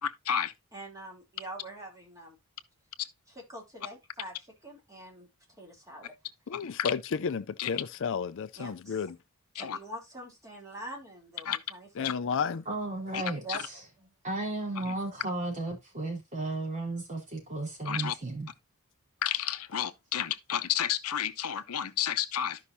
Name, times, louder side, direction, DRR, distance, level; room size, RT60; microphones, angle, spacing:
voice 1, 0.0-0.5 6.5-6.9 7.6-7.7 9.5-9.8 11.4-11.6 12.0-12.1 13.1-13.2 13.5-13.6 14.9-15.0 17.8-18.1 19.2-22.6, left 10 dB, 80° left, 0.7 m, -31 dB
voice 2, 0.7-2.4 3.3-4.3 4.6-5.3 5.6-6.1 8.6-9.0 9.5-12.4 13.1-13.6 14.0-14.1, right 1 dB, 15° right, 3.2 m, -44 dB
voice 3, 6.5-9.2 12.0-12.6, left 6 dB, 60° left, 0.4 m, -32 dB
voice 4, 12.7-13.4 14.2-18.5, right 2 dB, 35° right, 4.3 m, -34 dB
13.0 x 5.6 x 2.7 m
head